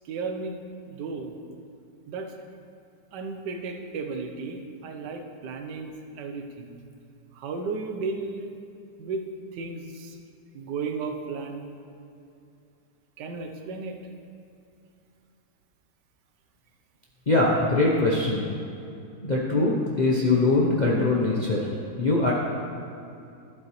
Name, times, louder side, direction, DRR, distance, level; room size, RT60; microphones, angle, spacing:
voice 1, 0.1-0.6 0.9-1.3 2.1-2.3 3.1-6.8 7.3-8.6 9.0-9.2 9.5-10.2 10.5-11.6 13.2-14.0, right 4 dB, 90° right, 4 dB, 1.4 m, -34 dB
voice 2, 17.3-18.5 19.2-21.7 22.0-22.3, left 2 dB, 40° left, -5 dB, 0.7 m, -22 dB
12.0 x 7.6 x 3.1 m, 2.6 s
omnidirectional pair, 1.8 m